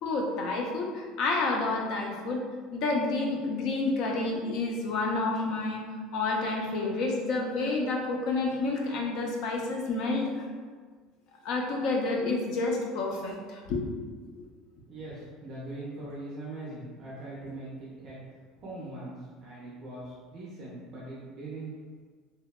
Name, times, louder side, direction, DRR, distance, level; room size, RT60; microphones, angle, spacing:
voice 1, 0.0-2.4 2.7-5.8 6.1-10.3 11.4-13.9 14.4-14.5, left 3 dB, 50° left, 0 dB, 0.4 m, -29 dB
voice 2, 14.9-18.2 18.6-21.7, right 2 dB, 40° right, -8 dB, 0.5 m, -41 dB
2.7 x 2.1 x 2.2 m, 1.5 s
cardioid pair, 175°, 0 cm